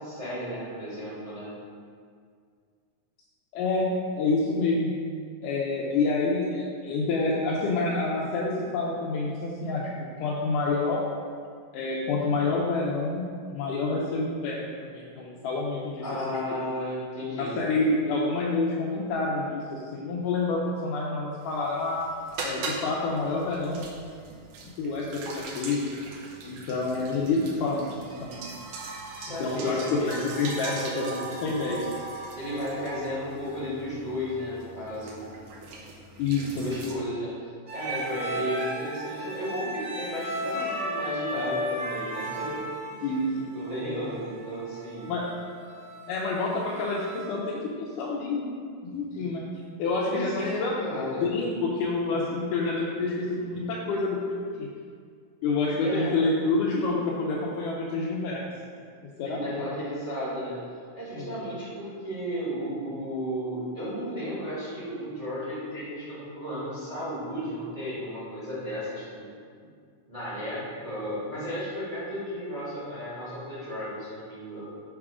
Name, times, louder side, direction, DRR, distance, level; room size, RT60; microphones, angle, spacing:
voice 1, 0.0-1.5 16.0-17.6 29.2-30.2 32.3-35.2 36.4-43.1 43.5-45.1 50.0-51.3 55.8-56.2 59.2-60.6 60.9-69.3 69.6-69.7 70.1-74.7, equal, 20° right, -10 dB, 0.9 m, -34 dB
voice 2, 3.5-3.9 4.2-4.9 5.4-11.0 11.7-16.0 17.4-22.0 22.4-23.8 24.8-25.9 26.4-28.4 29.4-31.8 36.2-36.7 43.0-43.5 45.1-45.3 46.1-48.6 48.8-49.4 49.8-50.8 51.2-54.7 55.4-58.5 59.2-59.6 61.1-61.3, left 3 dB, 85° left, -5 dB, 2.3 m, -28 dB
sound 1, 21.4-36.9, right 3 dB, 80° right, 1.3 m, -40 dB
sound 2, 37.7-47.3, equal, 55° right, 1.6 m, -34 dB
7.4 x 3.6 x 4.9 m, 2.1 s
omnidirectional pair, 3.7 m